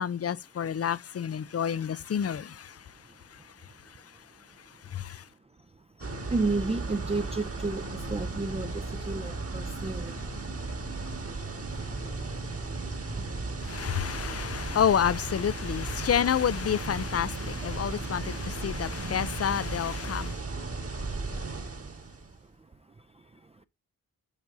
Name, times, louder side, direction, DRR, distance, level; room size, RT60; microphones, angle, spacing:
voice 1, 0.0-2.7 4.9-5.2 13.6-20.4, left 8 dB, 40° left, 0.4 m, -29 dB
voice 2, 6.0-10.3 13.1-14.2 17.6-18.3 20.3-20.7 21.1-21.2 21.9-22.0 23.1-23.6, right 3 dB, 15° right, 0.5 m, -34 dB
sound 1, 6.0-22.4, right 3 dB, 35° right, 1.6 m, -35 dB
11.0 x 5.3 x 2.6 m
cardioid pair, 60°, 38 cm